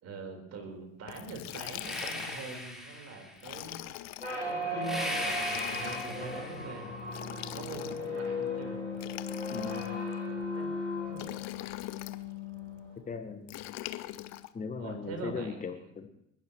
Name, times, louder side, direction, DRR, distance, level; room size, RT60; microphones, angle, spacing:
voice 1, 0.0-3.8 4.4-6.9 7.5-9.1 10.3-10.7 11.1-11.2 14.8-15.8, right 2 dB, 45° right, 4 dB, 4.3 m, -43 dB
Liquid, 1.1-2.5 3.4-4.4 5.2-6.2 7.1-8.2 8.9-10.1 11.1-12.2 13.5-14.5, left 16 dB, 50° left, 0.8 m, -42 dB
sound 1, 1.8-3.4 4.8-6.9, left 1 dB, ahead, 4.3 m, -38 dB
sound 2, 4.2-13.0, left 2 dB, 90° right, 4.9 m, -36 dB
voice 2, 9.5-10.0 13.1-13.6 14.5-16.1, left 5 dB, 20° left, 7 dB, 1.5 m, -38 dB
29.5 x 11.5 x 3.1 m, 0.80 s
figure-of-eight pair, 60°, 36 cm